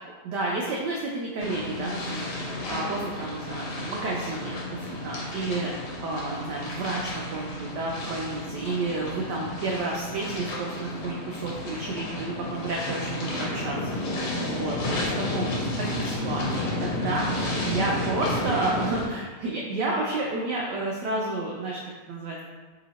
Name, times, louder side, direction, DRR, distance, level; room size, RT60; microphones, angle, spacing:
voice 1, 0.2-5.7 6.0-13.9 14.5-17.3 17.7-21.8 22.1-22.4, right 2 dB, 85° right, -3 dB, 0.9 m, -31 dB
sound 1, 1.4-19.1, left 1 dB, 70° left, 1.5 m, -32 dB
3.4 x 2.9 x 4.0 m, 1.3 s
omnidirectional pair, 2.4 m